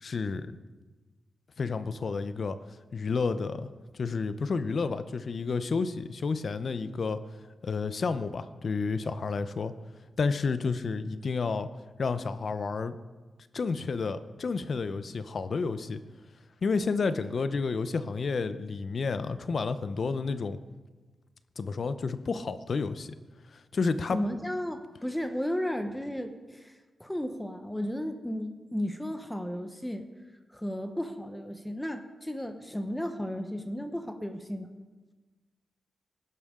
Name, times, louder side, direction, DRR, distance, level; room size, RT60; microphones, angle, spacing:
voice 1, 0.0-0.5 1.6-2.6 2.9-3.7 3.9-7.2 7.6-9.7 10.2-11.7 12.0-12.9 13.5-16.0 16.6-20.6 21.6-23.1 23.5-24.2, left 4 dB, 55° left, 12 dB, 0.7 m, -30 dB
voice 2, 24.1-30.1 30.5-34.7, equal, 5° left, 7 dB, 0.9 m, -34 dB
19.5 x 11.0 x 3.8 m, 1.3 s
wide cardioid pair, 115°, 0 cm